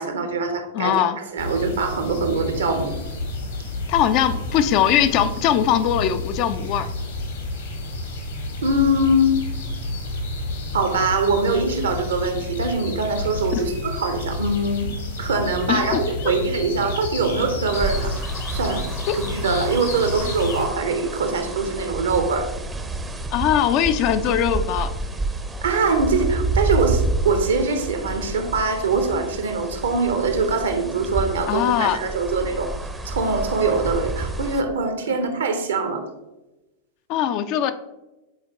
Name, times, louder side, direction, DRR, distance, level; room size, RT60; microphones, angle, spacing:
voice 1, 0.0-1.0 1.3-2.9 8.6-9.4 10.7-22.5 25.6-32.7 33.0-36.1, right 3 dB, 65° right, 7 dB, 0.9 m, -23 dB
voice 2, 0.7-1.2 3.9-6.9 13.5-13.6 15.7-16.4 19.1-19.2 23.3-24.9 31.5-32.0 37.1-37.7, left 10 dB, 40° left, 10 dB, 0.4 m, -21 dB
sound 1, 1.4-20.6, left 2 dB, 65° left, 1.5 m, -30 dB
sound 2, 17.7-34.6, right 2 dB, 10° right, 0.6 m, -29 dB
8.3 x 4.3 x 2.9 m, 1.0 s
figure-of-eight pair, 90°, 0 cm